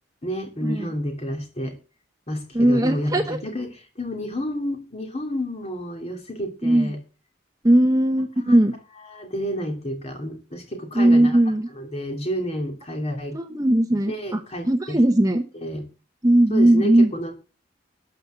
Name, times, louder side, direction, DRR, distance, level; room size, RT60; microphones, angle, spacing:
voice 1, 0.2-1.8 2.3-7.0 8.4-8.6 9.1-11.4 11.7-13.4 14.1-15.0 15.6-15.8 16.5-17.3, equal, 35° left, 3 dB, 2.9 m, -30 dB
voice 2, 2.5-3.4 6.6-6.9 7.6-8.7 10.9-11.7 13.3-15.4 16.2-17.1, right 1 dB, 20° right, 7 dB, 0.9 m, -18 dB
13.0 x 5.4 x 8.2 m, 0.34 s
head